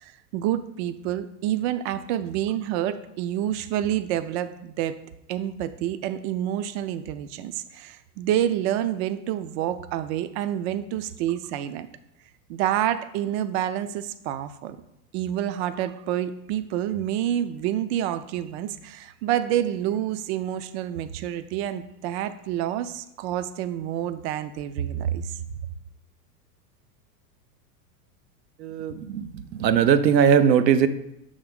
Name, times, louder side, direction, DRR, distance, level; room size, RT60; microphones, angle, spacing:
voice 1, 0.0-5.0 5.3-11.9 12.5-14.8 15.1-25.4, right 11 dB, 45° right, 11 dB, 0.5 m, -28 dB
voice 2, 28.6-29.3 29.6-30.9, right 8 dB, 85° right, 11 dB, 0.7 m, -19 dB
6.1 x 3.6 x 5.1 m, 0.81 s
hypercardioid pair, 105°, 50 cm